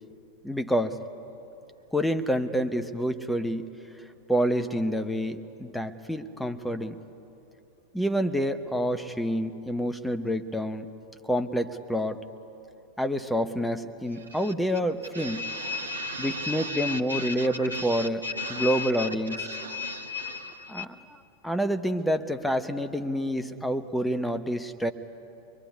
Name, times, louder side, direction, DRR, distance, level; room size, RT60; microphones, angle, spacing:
voice 1, 0.4-1.0 1.9-3.6 4.3-7.0 7.9-10.9 11.3-12.2 13.0-15.4 16.2-19.5 20.7-20.9 21.4-24.9, equal, 5° left, 8 dB, 1.0 m, -28 dB
voice 2, 15.3-18.9 19.5-20.8, left 3 dB, 75° right, 5 dB, 1.4 m, -34 dB
25.0 x 22.5 x 9.7 m, 2.8 s
figure-of-eight pair, 90°, 0 cm